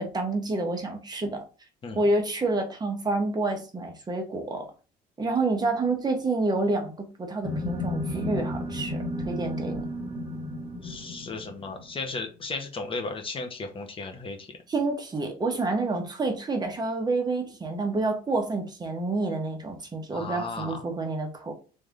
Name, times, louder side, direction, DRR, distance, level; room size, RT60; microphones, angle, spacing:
voice 1, 0.0-1.4 1.9-4.7 5.2-9.8 14.7-21.5, right 2 dB, 25° right, 2 dB, 1.2 m, -28 dB
sound 1, 7.4-12.0, left 1 dB, 5° right, 1.7 m, -33 dB
voice 2, 10.8-14.5 20.1-20.8, left 3 dB, 30° left, 4 dB, 1.0 m, -35 dB
3.4 x 3.3 x 3.7 m, 0.34 s
cardioid pair, 110°, 17 cm